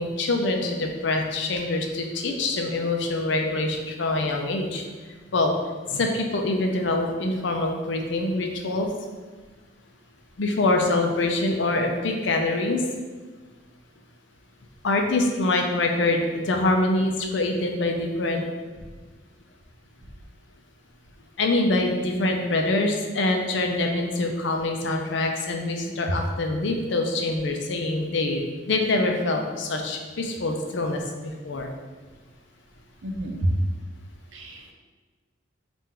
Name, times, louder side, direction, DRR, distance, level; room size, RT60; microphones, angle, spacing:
voice 1, 0.0-4.8 5.3-5.5 5.9-8.9 10.4-12.8 14.8-18.4 21.4-31.7, left 2 dB, 65° left, 3 dB, 0.5 m, -25 dB
voice 2, 33.0-33.5 34.3-34.7, right 1 dB, 80° right, 1 dB, 0.6 m, -28 dB
4.3 x 2.5 x 3.7 m, 1.3 s
head